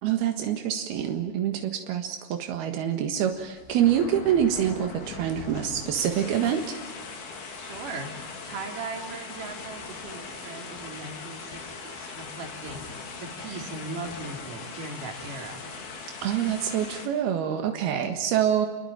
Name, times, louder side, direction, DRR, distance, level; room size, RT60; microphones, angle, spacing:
voice 1, 0.0-6.8 16.2-18.7, right 9 dB, 90° right, 5 dB, 3.6 m, -26 dB
sound 1, 3.2-17.1, left 4 dB, 80° left, 5.4 m, -40 dB
voice 2, 7.6-15.6, right 3 dB, 60° right, 3 dB, 5.0 m, -39 dB
29.0 x 23.0 x 8.9 m, 1.2 s
omnidirectional pair, 4.3 m